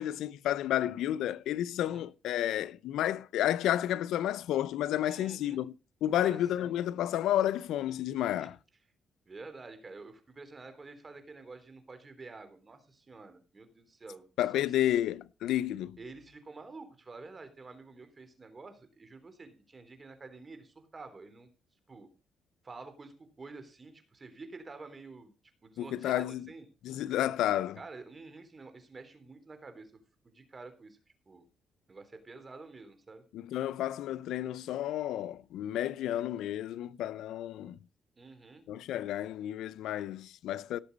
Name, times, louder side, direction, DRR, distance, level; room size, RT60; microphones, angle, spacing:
voice 1, 0.0-5.7 6.0-8.6 14.4-16.0 25.8-26.5 26.8-27.8 33.3-37.8 38.7-40.8, left 12 dB, 85° left, 0.6 m, -31 dB
voice 2, 5.1-5.6 6.1-6.8 8.4-8.5 9.3-14.2 14.5-14.7 16.0-21.5 21.9-22.1 22.6-25.3 25.6-26.7 27.8-29.9 30.2-31.0 31.3-31.5 31.9-33.2 38.2-38.7, right 3 dB, 30° right, 3.5 m, -49 dB
17.0 x 6.9 x 5.3 m
cardioid pair, 90°, 0 cm